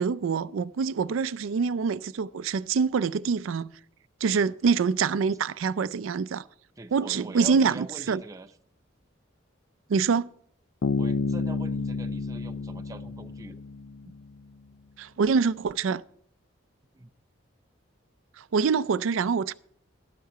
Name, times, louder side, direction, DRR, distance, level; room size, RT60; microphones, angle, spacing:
voice 1, 0.0-3.7 4.2-6.4 6.9-8.2 9.9-10.3 15.0-16.0 18.4-19.5, right 5 dB, 85° right, 0.4 m, -25 dB
voice 2, 6.8-8.5 11.0-13.6 14.0-14.1 16.9-17.1, right 2 dB, 15° right, 0.5 m, -43 dB
Bass guitar, 10.8-14.3, left 4 dB, 65° left, 0.5 m, -30 dB
12.5 x 9.4 x 4.8 m
head